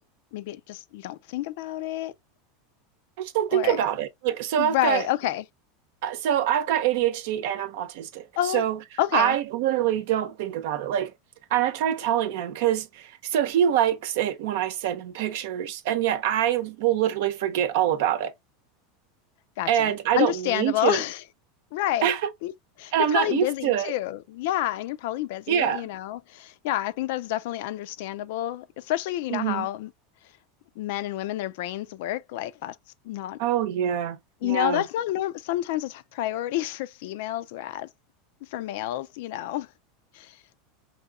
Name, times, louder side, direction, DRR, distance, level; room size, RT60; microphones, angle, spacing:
voice 1, 0.3-2.1 3.5-3.8 4.6-5.4 8.4-8.6 9.0-9.4 19.6-21.2 21.7-22.1 22.4-22.5 22.8-29.9 30.8-32.8 33.0-33.4 34.4-37.9 38.5-39.7 40.1-40.4, left 14 dB, 70° left, 0.4 m, -29 dB
voice 2, 3.2-5.1 6.0-8.2 8.5-8.8 9.1-11.1 11.5-18.3 19.7-21.0 22.0-22.2 22.9-23.9 25.5-25.9 29.3-29.7 33.4-34.8, right 10 dB, 70° right, 0.7 m, -25 dB
5.4 x 2.8 x 2.3 m
supercardioid pair, 130°, 0 cm